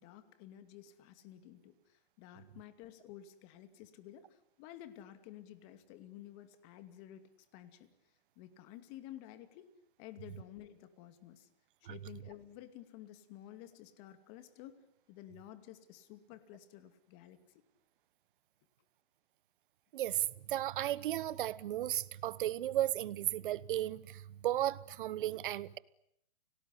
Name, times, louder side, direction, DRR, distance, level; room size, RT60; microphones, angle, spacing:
voice 1, 0.0-7.9 8.4-9.7 10.0-11.5 11.8-14.8 15.1-17.6, left 12 dB, 30° left, 2.5 m, -52 dB
voice 2, 19.9-25.8, right 13 dB, 55° right, 1.1 m, -35 dB
30.0 x 19.0 x 10.0 m
hypercardioid pair, 160°, 31 cm